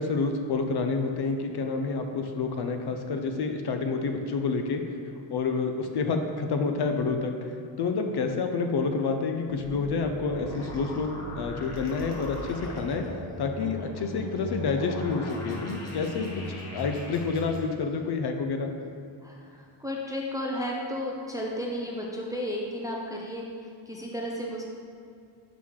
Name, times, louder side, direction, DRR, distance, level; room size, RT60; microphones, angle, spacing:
voice 1, 0.0-4.8 5.3-11.1 11.4-13.0 13.4-18.7, left 4 dB, 55° left, 5 dB, 0.5 m, -28 dB
sound 1, 9.5-17.6, equal, 30° left, 0.9 m, -39 dB
voice 2, 19.2-24.6, equal, 10° right, -2 dB, 0.4 m, -33 dB
5.9 x 4.6 x 3.6 m, 2.3 s
wide cardioid pair, 155°, 49 cm